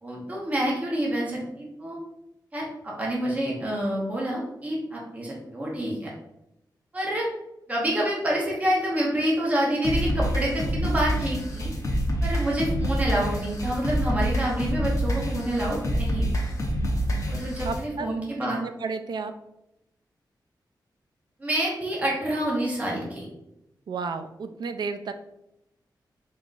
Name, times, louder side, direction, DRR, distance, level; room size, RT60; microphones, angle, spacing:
voice 1, 0.0-2.0 2.5-6.1 6.9-7.3 7.7-11.7 12.2-16.5 17.3-18.6 21.4-23.2, right 1 dB, 20° right, -4 dB, 0.8 m, -27 dB
sound 1, 9.8-17.8, equal, 45° left, 0.8 m, -27 dB
voice 2, 17.6-18.1 18.6-19.3 23.9-25.1, right 4 dB, 65° right, 9 dB, 0.3 m, -32 dB
3.8 x 3.8 x 2.4 m, 0.85 s
wide cardioid pair, 150°, 8 cm